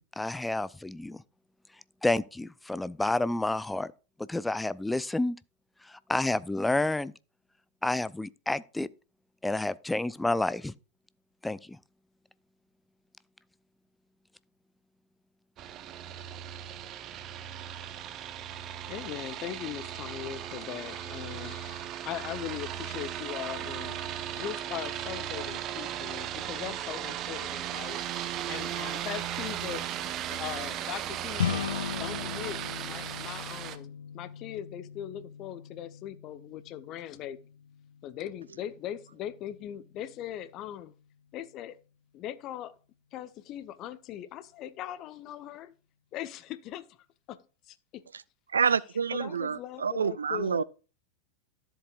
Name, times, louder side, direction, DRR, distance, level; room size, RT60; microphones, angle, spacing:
voice 1, 0.2-1.2 2.0-3.9 4.3-5.4 6.1-7.1 7.8-8.9 9.4-10.7 11.4-11.6, left 2 dB, 5° left, 0.5 m, -29 dB
sound 1, 15.6-33.8, right 11 dB, 35° right, 0.9 m, -37 dB
voice 2, 18.9-24.0 24.4-28.0 28.5-29.9 30.3-37.4 38.0-40.9 41.3-41.8 42.1-42.7 43.1-45.7 46.1-46.9 47.3-48.1 48.6-48.8 49.1-50.6, left 12 dB, 35° left, 0.9 m, -40 dB
sound 2, 31.4-40.8, left 7 dB, 65° left, 0.8 m, -39 dB
voice 3, 48.5-50.6, right 6 dB, 70° right, 0.4 m, -28 dB
13.0 x 7.9 x 2.4 m
figure-of-eight pair, 90°, 0 cm